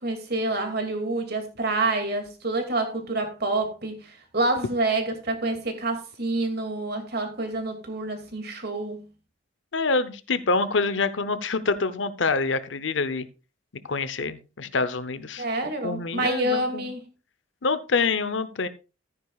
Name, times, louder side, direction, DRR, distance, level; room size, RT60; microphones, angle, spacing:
voice 1, 0.0-9.0 15.4-17.0, right 2 dB, 55° right, 2.4 m, -27 dB
voice 2, 9.7-13.3 13.8-16.9 17.6-18.7, left 4 dB, 70° left, 0.8 m, -26 dB
14.0 x 9.6 x 2.4 m
head